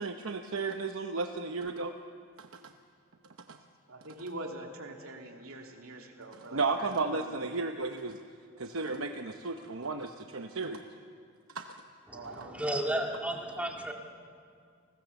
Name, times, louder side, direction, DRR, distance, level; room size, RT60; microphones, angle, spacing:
voice 1, 0.0-1.9 2.4-2.5 3.5-3.6 6.5-8.2 8.6-10.8 11.5-11.7, right 3 dB, 70° right, 5 dB, 1.0 m, -33 dB
voice 2, 3.9-7.4 12.1-13.0, right 1 dB, 90° right, 2 dB, 2.9 m, -44 dB
voice 3, 12.1-13.9, right 1 dB, 5° right, 1 dB, 2.2 m, -33 dB
29.5 x 20.0 x 7.1 m, 2.2 s
head